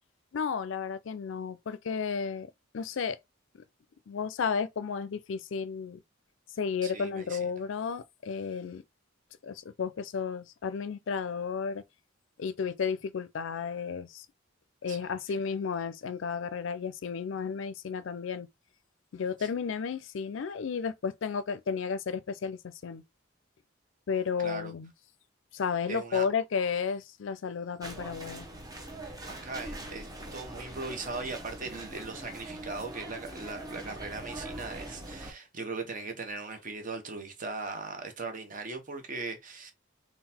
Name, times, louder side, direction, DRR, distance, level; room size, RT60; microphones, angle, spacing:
voice 1, 0.3-2.5 2.7-3.2 4.1-6.0 6.6-8.8 9.4-11.8 12.4-14.3 14.8-18.5 19.1-23.0 24.1-24.9 25.5-28.5, left 6 dB, 70° left, 0.4 m, -33 dB
voice 2, 6.8-7.5 14.9-15.1 19.4-19.5 24.4-24.7 25.9-26.3 29.3-30.1 30.3-39.7, right 3 dB, 40° right, 1.0 m, -39 dB
sound 1, 27.8-35.3, right 1 dB, 20° right, 0.9 m, -42 dB
3.9 x 2.3 x 4.2 m
head